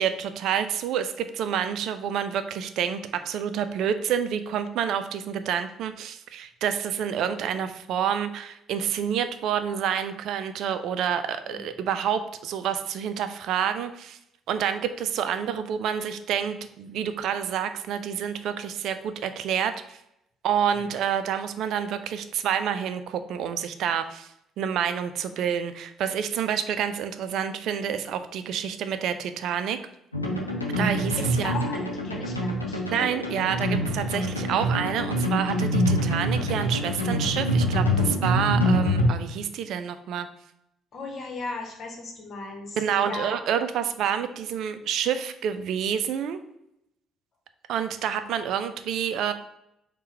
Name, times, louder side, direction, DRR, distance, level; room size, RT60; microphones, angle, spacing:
voice 1, 0.0-3.0 3.2-14.2 14.5-20.0 20.4-24.3 24.6-29.8 30.8-31.5 32.9-40.3 42.8-46.4 47.7-49.3, right 8 dB, 55° right, 10 dB, 0.3 m, -28 dB
sound 1, 30.1-39.1, equal, 90° left, 0.5 m, -25 dB
voice 2, 31.2-32.8 40.9-43.3, left 3 dB, 45° left, 2 dB, 1.1 m, -36 dB
4.4 x 2.2 x 4.6 m, 0.81 s
figure-of-eight pair, 50°, 0 cm